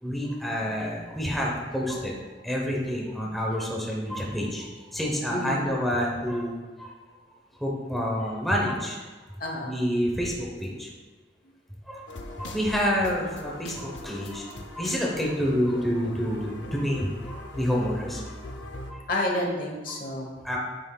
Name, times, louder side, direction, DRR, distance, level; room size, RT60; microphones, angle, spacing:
voice 1, 0.0-2.2 2.4-4.7 4.9-6.9 7.6-9.0 9.6-10.9 11.9-12.1 12.4-14.4 14.8-18.3 18.9-19.0 19.9-20.0 20.4-20.6, equal, ahead, -3 dB, 0.9 m, -28 dB
voice 2, 5.3-5.6 9.4-9.7 19.1-20.6, left 1 dB, 50° left, 0 dB, 1.1 m, -30 dB
sound 1, 12.1-18.9, left 1 dB, 85° left, 0.7 m, -41 dB
9.1 x 6.0 x 2.3 m, 1.3 s
head